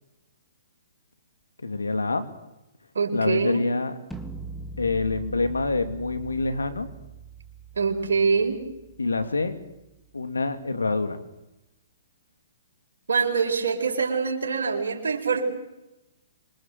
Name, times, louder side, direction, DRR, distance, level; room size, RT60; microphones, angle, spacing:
voice 1, 1.6-2.3 3.1-3.9 4.8-6.9 9.0-9.6 10.1-11.2, left 3 dB, 90° left, 9 dB, 2.9 m, -26 dB
voice 2, 2.9-3.6 7.8-8.6 13.1-15.4, right 5 dB, 75° right, 1 dB, 4.8 m, -24 dB
sound 1, 4.1-10.1, right 4 dB, 5° left, 2.5 m, -42 dB
26.0 x 23.5 x 7.8 m, 0.94 s
hypercardioid pair, 125°, 0 cm